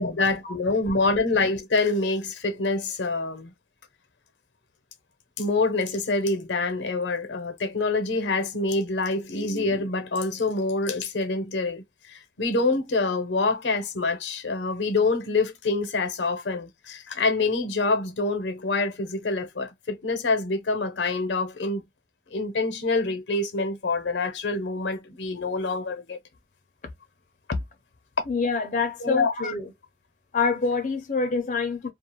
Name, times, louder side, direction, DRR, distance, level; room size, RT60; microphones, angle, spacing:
voice 1, 0.0-3.5 5.4-21.8 22.3-26.2 29.0-29.3, left 3 dB, 90° left, 0.7 m, -26 dB
voice 2, 28.3-29.7 30.3-31.9, left 4 dB, 45° left, 0.5 m, -26 dB
2.3 x 2.1 x 2.8 m
head